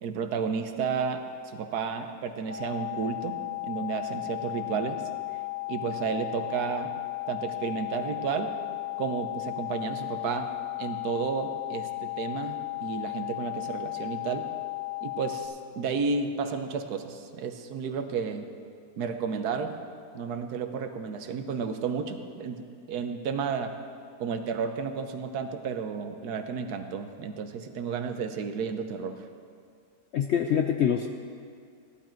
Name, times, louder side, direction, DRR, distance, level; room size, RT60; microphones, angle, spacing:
voice 1, 0.0-1.2 1.5-5.0 5.7-6.9 7.3-8.5 9.0-10.5 10.8-14.5 15.0-18.4 19.0-19.7 20.1-22.6 22.9-23.7 24.2-29.2, right 5 dB, 70° right, 7 dB, 1.3 m, -32 dB
sound 1, 2.5-15.5, left 24 dB, 65° left, 1.9 m, -35 dB
voice 2, 30.1-31.1, left 8 dB, 90° left, 5 dB, 0.6 m, -25 dB
15.0 x 11.5 x 4.5 m, 2.2 s
omnidirectional pair, 1.8 m